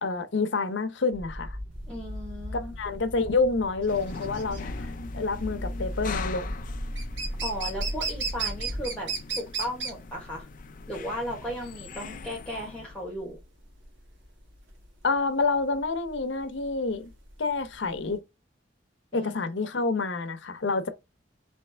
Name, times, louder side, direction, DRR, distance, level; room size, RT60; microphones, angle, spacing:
voice 1, 0.0-1.6 2.5-4.9 5.1-6.6 15.0-17.1 17.4-18.2 19.1-20.9, left 3 dB, 75° left, 0.7 m, -28 dB
sound 1, 1.1-8.9, equal, 20° right, 0.6 m, -37 dB
sound 2, 1.8-18.1, right 5 dB, 85° right, 1.5 m, -36 dB
voice 2, 1.9-2.7 7.4-9.1 9.3-10.5 10.9-13.4 19.1-19.3, equal, 5° left, 1.3 m, -35 dB
sound 3, 3.9-13.0, left 5 dB, 45° left, 0.4 m, -42 dB
3.3 x 3.1 x 4.3 m
head